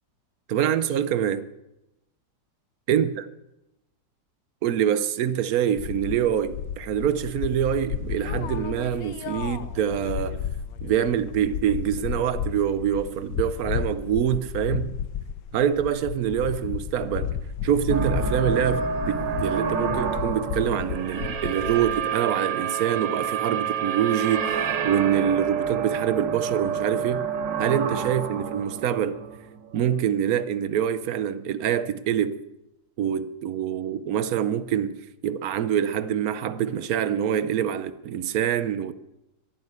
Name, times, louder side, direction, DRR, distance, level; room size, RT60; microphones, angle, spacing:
voice 1, 0.5-1.5 2.9-3.2 4.6-10.4 10.8-14.9 15.5-17.3 17.6-27.2 27.6-29.2 29.7-32.4 33.0-35.0 35.2-38.9, right 9 dB, 65° right, 1.0 m, -25 dB
sound 1, 5.8-22.0, left 8 dB, 75° left, 1.4 m, -33 dB
sound 2, 17.9-30.0, right 6 dB, 85° right, 1.9 m, -28 dB
11.5 x 11.0 x 8.0 m
omnidirectional pair, 1.9 m